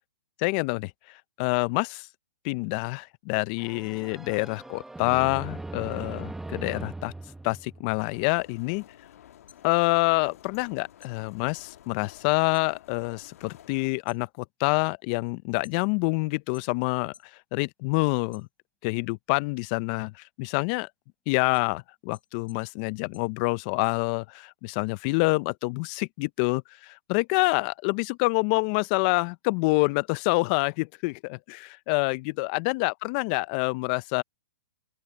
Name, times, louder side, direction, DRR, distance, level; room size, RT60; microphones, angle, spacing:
voice 1, 0.4-0.9 1.4-2.1 2.4-7.1 7.4-8.8 9.6-17.1 17.5-18.5 18.8-20.9 21.3-34.2, left 27 dB, 30° left, 0.4 m, -27 dB
sound 1, 3.6-8.3, right 2 dB, 5° right, 0.8 m, -40 dB
sound 2, 8.1-13.9, left 11 dB, 60° left, 1.6 m, -52 dB
sound 3, 9.5-10.7 11.0-12.7 13.1-13.5 13.9-16.1 16.5-17.4 17.8-19.0 19.4-23.9, left 8 dB, 15° left, 3.6 m, -59 dB
open air
hypercardioid pair, 145°, 9 cm